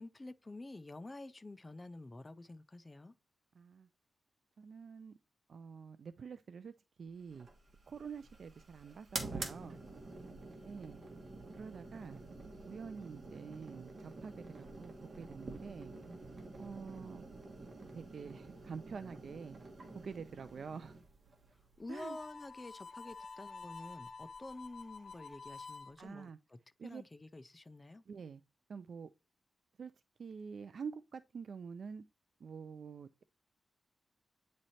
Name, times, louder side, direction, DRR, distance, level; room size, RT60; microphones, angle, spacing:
voice 1, 0.0-3.1 21.8-28.0, left 2 dB, 20° left, 0.4 m, -49 dB
voice 2, 3.6-3.9 4.6-5.2 5.5-6.7 7.0-7.5 7.9-9.8 10.6-11.0 11.6-12.2 12.6-15.9 16.6-17.2 17.9-19.6 19.9-21.0 21.9-22.2 26.0-26.4 26.8-27.0 28.1-28.4 28.7-29.1 29.8-29.9 30.2-32.0 32.4-33.2, right 6 dB, 55° right, 0.4 m, -47 dB
sound 1, 7.3-22.6, right 3 dB, 40° right, 1.3 m, -48 dB
Harmonica, 21.9-25.9, left 4 dB, 55° left, 0.9 m, -49 dB
8.8 x 3.2 x 4.1 m
wide cardioid pair, 145°, 0 cm